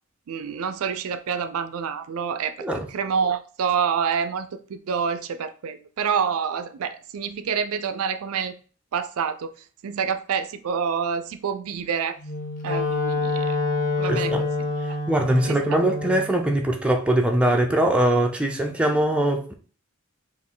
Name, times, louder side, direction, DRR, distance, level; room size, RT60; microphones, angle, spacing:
voice 1, 0.3-8.5 8.9-9.5 9.8-12.2 12.6-13.6 14.0-14.5 15.5-15.6, right 6 dB, 80° right, 0.4 m, -27 dB
Wind instrument woodwind instrument, 12.2-16.3, left 2 dB, 35° left, 0.7 m, -26 dB
voice 2, 14.1-14.4 15.1-19.5, right 1 dB, 5° right, 0.4 m, -22 dB
4.3 x 2.5 x 3.7 m
head